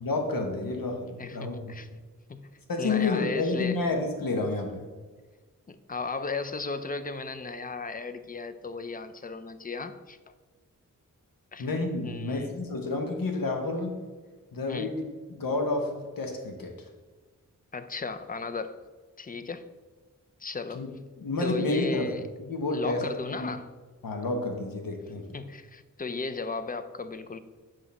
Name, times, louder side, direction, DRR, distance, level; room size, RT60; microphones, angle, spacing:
voice 1, 0.0-1.7 2.7-4.9 11.6-14.0 14.5-15.0 15.4-16.8 20.7-20.9 21.2-23.1 23.4-23.5 24.0-25.4, left 2 dB, 85° left, 1.1 m, -30 dB
voice 2, 1.2-1.9 2.3-2.5 2.8-3.8 5.7-10.2 11.5-11.7 12.0-12.6 14.7-14.9 17.7-18.8 19.2-19.7 20.4-20.9 21.4-22.2 22.7-23.7 25.3-27.4, left 4 dB, 25° left, 0.4 m, -35 dB
6.0 x 5.1 x 4.2 m
wide cardioid pair, 95°, 34 cm